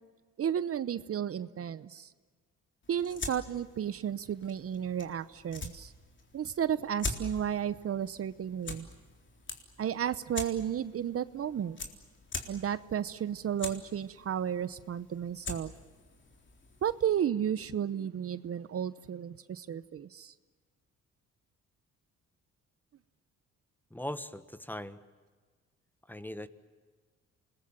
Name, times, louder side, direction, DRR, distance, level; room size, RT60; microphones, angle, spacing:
voice 1, 0.4-2.1 2.9-5.9 6.3-8.9 9.8-11.8 12.5-15.7 16.8-20.3, right 9 dB, 50° right, 15 dB, 0.9 m, -33 dB
sound 1, 2.8-17.2, left 3 dB, 40° left, 3.8 m, -44 dB
voice 2, 23.9-25.0 26.1-26.5, left 1 dB, 5° left, 13 dB, 1.3 m, -39 dB
28.0 x 21.0 x 8.9 m, 1.5 s
cardioid pair, 90°, 30 cm